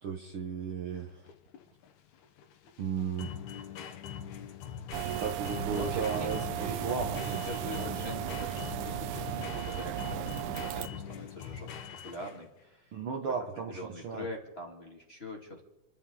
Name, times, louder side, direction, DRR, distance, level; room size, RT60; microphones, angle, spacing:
voice 1, 0.0-1.3 2.8-3.3 5.0-8.0 12.9-14.2, right 6 dB, 60° right, 3 dB, 1.7 m, -35 dB
sound 1, 0.9-12.6, left 8 dB, 75° left, 2.5 m, -43 dB
sound 2, 4.9-10.9, right 12 dB, 90° right, 2.2 m, -36 dB
voice 2, 5.7-11.7 12.0-13.0 13.2-13.3 13.7-15.6, left 1 dB, 25° left, 0 dB, 2.0 m, -43 dB
28.5 x 11.5 x 3.8 m, 0.93 s
omnidirectional pair, 3.4 m